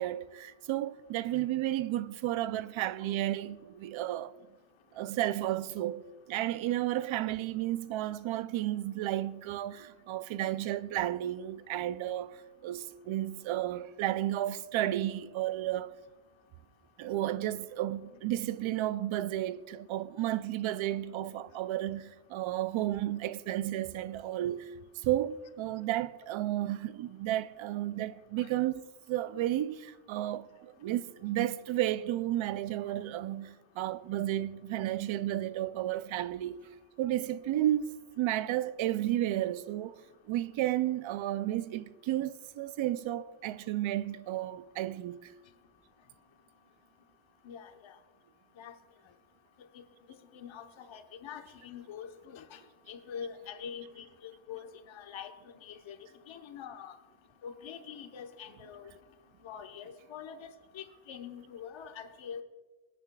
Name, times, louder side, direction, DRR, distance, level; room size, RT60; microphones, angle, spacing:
voice 1, 0.0-4.3 4.9-15.9 17.0-24.7 25.0-36.6 37.0-40.0 40.3-45.2, right 13 dB, 85° right, 0.6 m, -32 dB
voice 2, 47.4-47.9 48.6-48.7 50.3-52.6 52.9-54.0 54.5-55.3 55.6-56.0 56.3-56.9 57.4-58.9 59.4-62.4, left 7 dB, 80° left, 1.1 m, -44 dB
22.5 x 9.2 x 2.3 m
wide cardioid pair, 135°, 46 cm